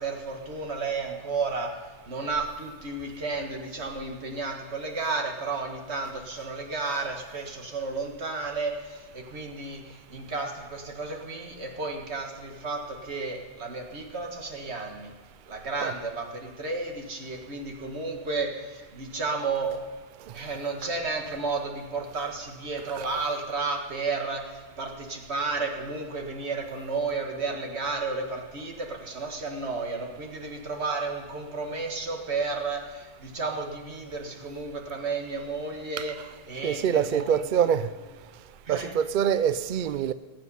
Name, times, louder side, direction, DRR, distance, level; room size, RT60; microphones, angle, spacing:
voice 1, 0.0-15.1 15.5-19.7 20.3-36.2 36.5-37.5 38.7-38.9, right 3 dB, 75° right, 2 dB, 2.0 m, -32 dB
voice 2, 36.6-37.9 38.7-40.1, right 8 dB, 60° right, 13 dB, 0.6 m, -25 dB
20.5 x 7.7 x 5.5 m, 1.4 s
omnidirectional pair, 1.1 m